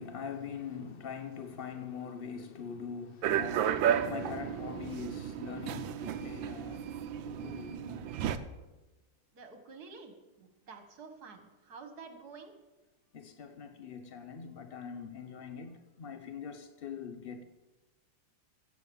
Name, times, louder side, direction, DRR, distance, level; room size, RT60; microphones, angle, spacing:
voice 1, 0.0-6.9 7.2-8.1 13.1-17.4, left 6 dB, 75° left, 0.5 m, -43 dB
sound 1, 3.2-8.4, right 9 dB, 80° right, 1.5 m, -33 dB
voice 2, 9.3-12.5, right 4 dB, 55° right, 2.1 m, -50 dB
16.0 x 7.3 x 7.1 m
omnidirectional pair, 2.1 m